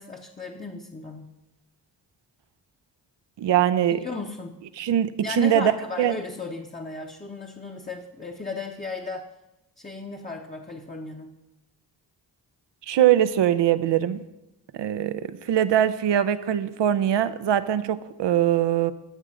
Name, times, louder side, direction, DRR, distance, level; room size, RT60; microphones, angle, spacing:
voice 1, 0.0-1.3 3.9-4.6 5.2-9.3 9.8-11.4, left 3 dB, 20° left, 1 dB, 0.9 m, -35 dB
voice 2, 3.4-4.0 4.8-5.7 6.0-6.1 12.9-14.2 14.8-15.2 15.5-18.9, right 11 dB, 80° right, 13 dB, 0.7 m, -22 dB
12.5 x 6.6 x 5.0 m, 0.95 s
cardioid pair, 75°, 42 cm